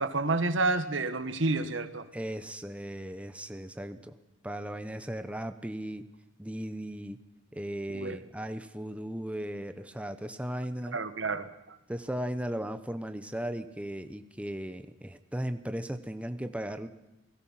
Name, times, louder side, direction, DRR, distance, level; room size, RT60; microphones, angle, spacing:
voice 1, 0.0-2.0 7.9-8.2 10.9-11.8, right 3 dB, 70° right, 10 dB, 1.6 m, -29 dB
voice 2, 2.1-4.2 4.4-6.1 6.4-7.2 7.5-11.0 11.9-16.9, right 1 dB, 5° right, 10 dB, 0.9 m, -36 dB
29.0 x 19.0 x 5.8 m, 0.97 s
head